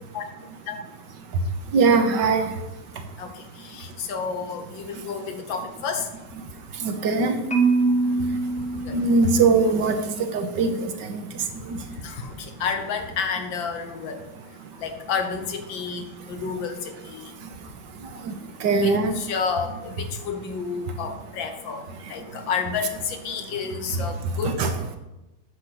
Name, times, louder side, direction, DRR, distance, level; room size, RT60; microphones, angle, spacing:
voice 1, 1.7-2.5 6.8-7.4 8.9-11.2 11.7-11.8 18.2-18.3 18.6-19.2 23.9-24.0 24.4-24.7, right 4 dB, 70° right, 7 dB, 1.6 m, -21 dB
voice 2, 3.2-6.1 8.7-9.0 12.0-14.2 14.8-17.3 18.8-21.8 22.1-24.6, left 6 dB, 85° left, 6 dB, 1.9 m, -30 dB
Marimba xylophone, 7.5-9.7, right 3 dB, 5° left, 0.9 m, -24 dB
9.1 x 6.7 x 5.9 m, 0.99 s
omnidirectional pair, 2.0 m